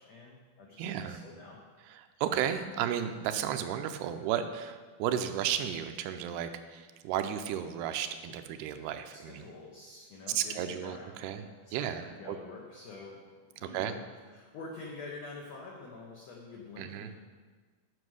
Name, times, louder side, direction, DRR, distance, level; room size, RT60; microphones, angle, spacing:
voice 1, 0.0-1.6 9.1-14.1 14.3-17.1, left 3 dB, 90° left, -2 dB, 1.5 m, -47 dB
voice 2, 0.8-1.2 1.9-9.5 10.3-11.4 11.7-12.4 13.6-13.9 16.8-17.1, right 9 dB, 85° right, 8 dB, 2.5 m, -34 dB
9.7 x 5.2 x 6.3 m, 1.4 s
omnidirectional pair, 4.6 m